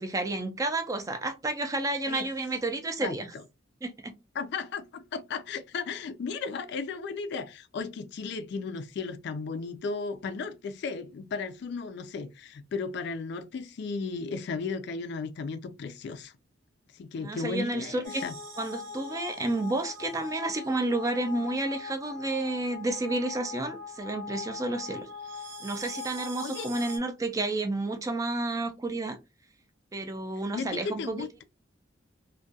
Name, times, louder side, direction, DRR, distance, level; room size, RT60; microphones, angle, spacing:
voice 1, 0.0-3.3 3.8-4.1 17.2-18.2 18.6-25.1 25.6-29.2 29.9-31.4, right 2 dB, 20° right, 0.3 m, -31 dB
voice 2, 4.4-16.3 16.9-18.4 26.4-26.7 30.5-31.4, left 4 dB, 60° left, 0.3 m, -35 dB
sound 1, 18.0-27.0, left 4 dB, 70° right, 0.8 m, -41 dB
2.3 x 2.2 x 2.6 m
head